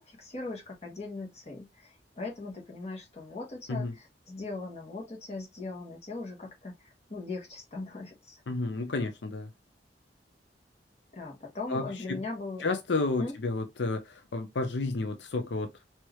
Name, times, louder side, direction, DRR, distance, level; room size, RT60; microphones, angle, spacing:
voice 1, 0.0-8.4 11.1-12.6 13.2-13.4, left 3 dB, 40° left, 1.6 m, -39 dB
voice 2, 8.5-9.5 11.7-12.2 12.6-15.7, left 3 dB, 85° left, 0.6 m, -31 dB
4.6 x 2.9 x 3.0 m
head